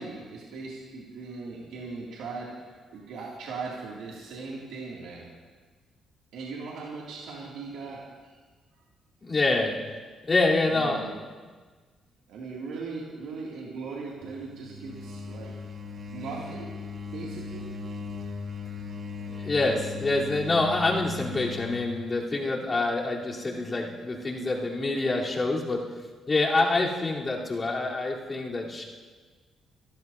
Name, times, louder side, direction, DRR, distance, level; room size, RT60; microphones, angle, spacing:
voice 1, 0.0-5.3 6.3-8.3 10.6-11.1 12.3-15.6 16.1-16.7 17.1-17.7 18.8-19.2 28.3-28.4, right 4 dB, 80° right, -5 dB, 2.7 m, -39 dB
voice 2, 9.2-9.8 10.3-11.1 19.3-25.8 26.3-28.8, left 2 dB, 35° left, -4 dB, 3.7 m, -26 dB
sound 1, 14.2-22.0, left 5 dB, 55° right, 2.1 m, -38 dB
26.0 x 13.0 x 2.8 m, 1.4 s
cardioid pair, 75°, 0 cm